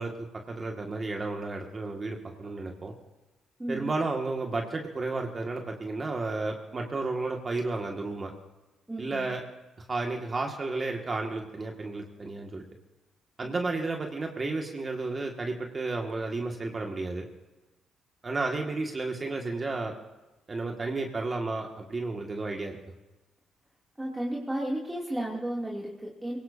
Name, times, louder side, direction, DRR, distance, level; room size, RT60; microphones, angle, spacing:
voice 1, 0.0-2.9 3.7-8.3 9.0-9.4 9.9-12.6 13.4-17.2 18.2-19.9 20.5-22.8, right 3 dB, 30° right, 1 dB, 2.0 m, -32 dB
voice 2, 3.6-3.9 8.9-9.3 13.4-13.5 24.0-26.4, right 1 dB, 10° right, -4 dB, 2.9 m, -33 dB
22.0 x 18.0 x 2.8 m, 1.1 s
cardioid pair, 90°, 0 cm